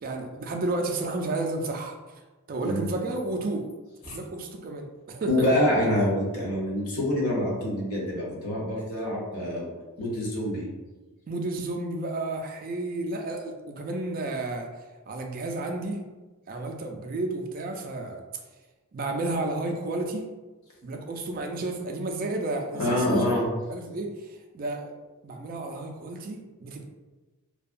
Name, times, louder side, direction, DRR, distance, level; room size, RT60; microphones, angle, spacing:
voice 1, 0.0-2.0 2.5-3.6 4.1-5.5 11.3-14.7 15.1-16.0 16.5-18.2 18.9-20.3 20.8-23.3 23.7-24.9 25.2-26.9, right 2 dB, 40° right, 3 dB, 0.3 m, -32 dB
voice 2, 5.3-9.7 10.0-10.6 22.7-23.5, left 1 dB, 75° left, -3 dB, 0.8 m, -26 dB
2.7 x 2.2 x 2.4 m, 1.2 s
head